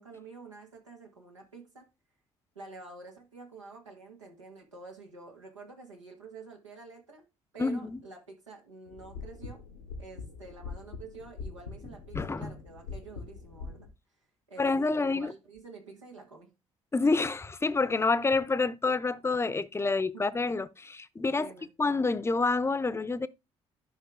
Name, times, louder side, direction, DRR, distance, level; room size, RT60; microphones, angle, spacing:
voice 1, 0.0-1.9 2.5-7.2 7.5-9.6 10.0-13.9 14.5-16.5 20.1-20.4 21.4-21.7, right 3 dB, 90° right, 1.6 m, -48 dB
voice 2, 7.6-8.0 12.1-12.5 14.6-15.3 16.9-21.5 21.8-23.3, left 3 dB, 15° left, 0.7 m, -28 dB
sound 1, 8.9-13.9, left 4 dB, 90° left, 1.2 m, -43 dB
11.5 x 5.4 x 3.5 m
figure-of-eight pair, 50°, 15 cm